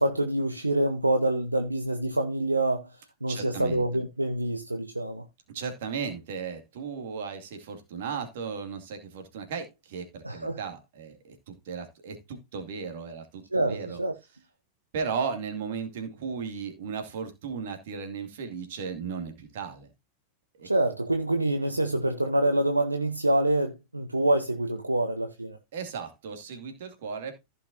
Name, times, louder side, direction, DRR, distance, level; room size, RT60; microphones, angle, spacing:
voice 1, 0.0-2.9 3.2-5.2 10.2-10.6 13.5-14.2 20.6-25.6, right 1 dB, 85° right, 0.9 m, -26 dB
voice 2, 3.3-3.8 5.5-11.2 11.5-14.0 14.9-19.9 20.6-20.7 25.7-27.3, right 6 dB, 55° right, 2.4 m, -35 dB
15.0 x 5.5 x 2.7 m
figure-of-eight pair, 90°, 0 cm